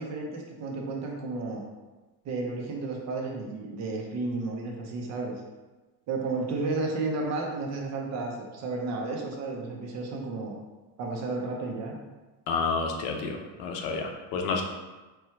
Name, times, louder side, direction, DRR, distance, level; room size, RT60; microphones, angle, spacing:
voice 1, 0.0-1.6 2.2-5.3 6.1-10.6 11.0-12.0, right 3 dB, 40° right, 0 dB, 0.7 m, -32 dB
voice 2, 12.5-14.6, left 4 dB, 80° left, 3 dB, 0.8 m, -30 dB
4.6 x 2.3 x 4.4 m, 1.2 s
cardioid pair, 165°, 43 cm